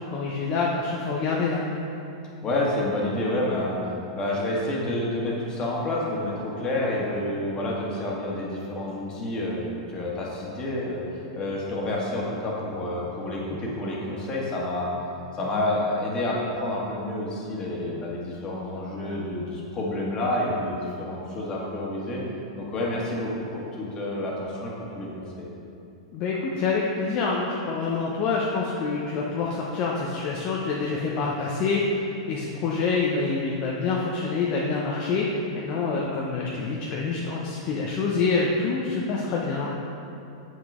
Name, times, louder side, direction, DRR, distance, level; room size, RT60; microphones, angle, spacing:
voice 1, 0.0-1.6 26.1-39.7, left 4 dB, 45° left, -3 dB, 0.8 m, -26 dB
voice 2, 2.4-14.9 15.3-22.2 22.5-25.1 25.4-25.5, left 1 dB, 30° left, -4 dB, 1.7 m, -29 dB
7.5 x 6.1 x 3.7 m, 2.7 s
hypercardioid pair, 105°, 3 cm